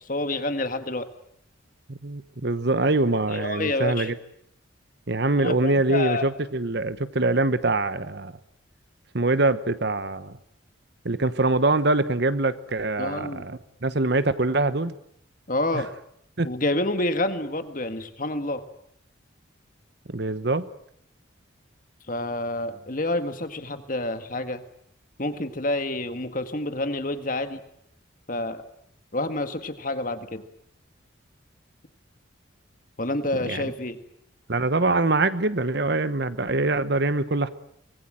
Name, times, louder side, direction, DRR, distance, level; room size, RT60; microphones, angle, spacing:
voice 1, 0.1-1.1 3.3-4.1 5.4-6.3 13.0-13.5 15.5-15.9 16.4-18.6 22.1-24.6 25.2-27.6 28.3-28.6 29.1-30.4 33.0-34.0, left 2 dB, 40° left, 9 dB, 1.9 m, -28 dB
voice 2, 1.9-4.1 5.1-8.3 9.1-10.4 11.0-15.0 15.7-15.8 16.4-16.5 20.1-20.7 33.4-33.7 34.5-37.5, right 2 dB, 55° right, 14 dB, 1.1 m, -24 dB
24.5 x 20.5 x 9.0 m, 0.72 s
head